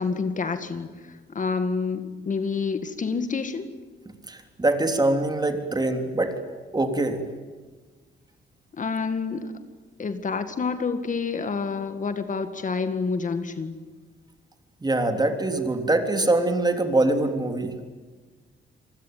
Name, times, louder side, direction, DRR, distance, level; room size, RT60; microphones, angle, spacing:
voice 1, 0.0-3.7 8.7-9.5 10.0-13.8, left 4 dB, 40° left, 9 dB, 2.0 m, -28 dB
voice 2, 4.3-6.3 6.7-7.2 14.8-17.8, right 2 dB, 20° right, 6 dB, 3.4 m, -23 dB
27.5 x 20.5 x 9.4 m, 1.4 s
cardioid pair, 80°, 20 cm